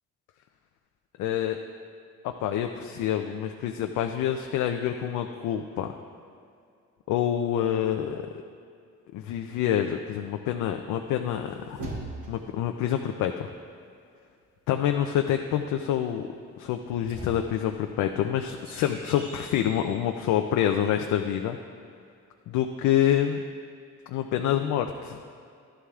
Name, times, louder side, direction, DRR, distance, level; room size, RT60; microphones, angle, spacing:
voice 1, 1.2-1.6 2.4-5.9 7.1-8.2 9.1-12.0 12.3-13.5 14.7-16.3 16.6-21.6 22.5-23.4 24.1-25.2, left 10 dB, 90° left, 5 dB, 0.5 m, -27 dB
sound 1, 11.2-12.7 16.7-20.0, right 1 dB, 85° right, 2.7 m, -42 dB
12.5 x 11.5 x 2.4 m, 2.3 s
cardioid pair, 90°, 30 cm